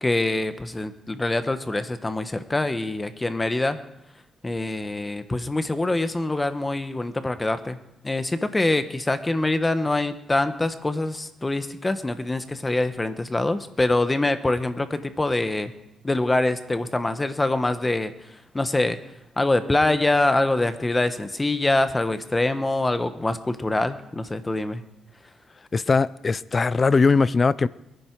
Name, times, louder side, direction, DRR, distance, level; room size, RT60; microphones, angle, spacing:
voice 1, 0.0-3.8 4.4-7.8 8.0-15.7 16.0-19.0 19.4-24.8, left 2 dB, 15° left, 1.1 m, -24 dB
voice 2, 25.7-27.7, left 4 dB, 35° left, 0.5 m, -20 dB
22.5 x 10.5 x 4.7 m
cardioid pair, 95°, 0 cm